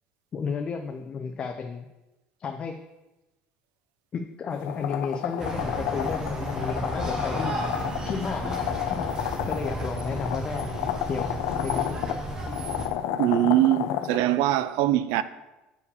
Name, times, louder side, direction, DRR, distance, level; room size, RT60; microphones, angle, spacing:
voice 1, 0.3-1.9 2.4-2.8 4.1-9.0 9.4-10.7 11.1-12.0, left 5 dB, 25° left, 0.4 m, -33 dB
sound 1, 4.5-14.2, left 11 dB, 80° left, 0.5 m, -31 dB
sound 2, 5.4-12.9, right 1 dB, 15° right, 0.8 m, -33 dB
voice 2, 13.2-15.2, right 13 dB, 90° right, 0.5 m, -22 dB
6.9 x 4.8 x 6.8 m
cardioid pair, 175°, 4 cm